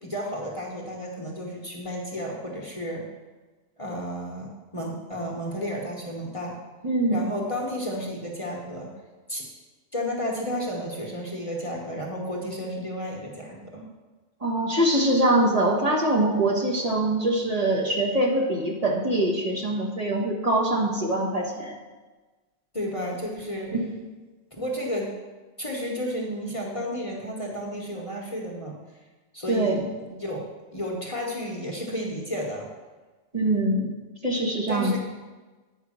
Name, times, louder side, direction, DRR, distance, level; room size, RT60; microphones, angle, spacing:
voice 1, 0.0-3.0 3.8-6.6 7.1-8.9 9.3-9.5 9.9-13.9 22.7-23.8 24.5-25.1 25.6-28.8 29.3-29.8 30.1-30.4 30.7-32.7 34.7-35.0, equal, 30° left, -1 dB, 1.1 m, -32 dB
voice 2, 6.8-7.2 14.4-21.7 23.7-23.8 29.5-29.8 33.3-33.9 34.2-34.9, right 1 dB, 35° right, -3 dB, 1.5 m, -23 dB
9.0 x 5.0 x 6.2 m, 1.3 s
omnidirectional pair, 1.1 m